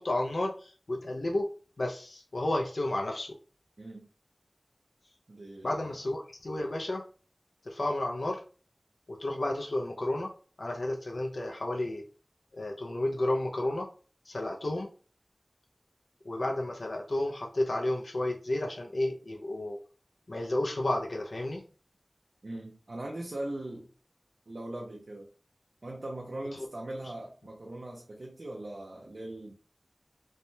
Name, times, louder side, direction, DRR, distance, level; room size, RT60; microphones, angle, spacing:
voice 1, 0.0-1.5 1.8-3.3 5.6-7.0 7.6-8.4 9.1-10.3 10.6-12.0 12.6-13.9 14.3-14.9 16.2-19.8 20.3-21.6, left 1 dB, 85° left, 1 dB, 0.4 m, -32 dB
voice 2, 3.8-4.1 5.3-6.0 22.4-23.9 24.5-25.3 25.8-29.5, right 1 dB, 85° right, -1 dB, 0.5 m, -40 dB
3.2 x 2.1 x 2.6 m, 0.39 s
wide cardioid pair, 50°, 0 cm